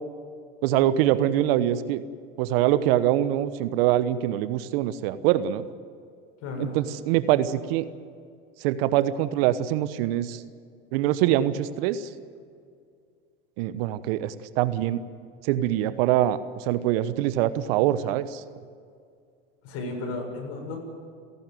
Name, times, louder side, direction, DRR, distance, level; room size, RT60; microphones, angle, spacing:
voice 1, 0.6-2.0 2.4-5.7 6.6-7.8 8.6-10.4 10.9-12.1 13.6-15.0 15.4-18.4, right 12 dB, 65° right, 14 dB, 1.1 m, -24 dB
voice 2, 6.4-6.8 19.6-20.8, left 2 dB, 50° left, 2 dB, 7.4 m, -33 dB
30.0 x 11.5 x 9.3 m, 2.2 s
hypercardioid pair, 80°, 32 cm